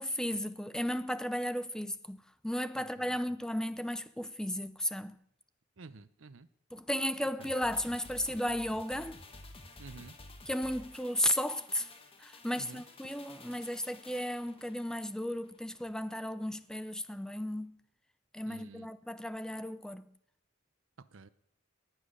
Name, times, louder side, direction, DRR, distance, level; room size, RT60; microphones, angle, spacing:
voice 1, 0.0-5.2 6.7-9.2 10.5-11.9 12.2-17.8 18.3-20.1, left 1 dB, 5° left, 0.6 m, -34 dB
voice 2, 2.8-3.2 5.8-6.5 7.4-7.5 9.8-10.2 12.6-12.8 18.5-18.9 21.0-21.3, right 4 dB, 75° right, 0.7 m, -50 dB
sound 1, 7.4-16.0 16.3-16.4, left 2 dB, 30° left, 1.6 m, -53 dB
18.5 x 7.4 x 6.6 m
head